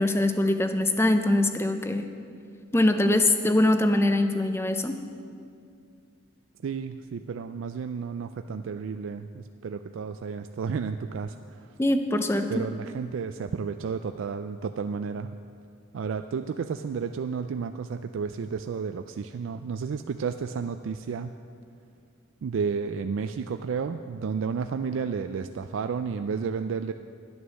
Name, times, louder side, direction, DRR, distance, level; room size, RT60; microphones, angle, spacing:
voice 1, 0.0-2.1 2.7-5.0 11.8-12.6, left 1 dB, 10° left, 7 dB, 0.5 m, -23 dB
voice 2, 6.6-11.7 12.5-15.4 15.9-21.3 22.4-26.9, right 5 dB, 75° right, 8 dB, 0.3 m, -32 dB
11.0 x 9.8 x 6.3 m, 2.3 s
head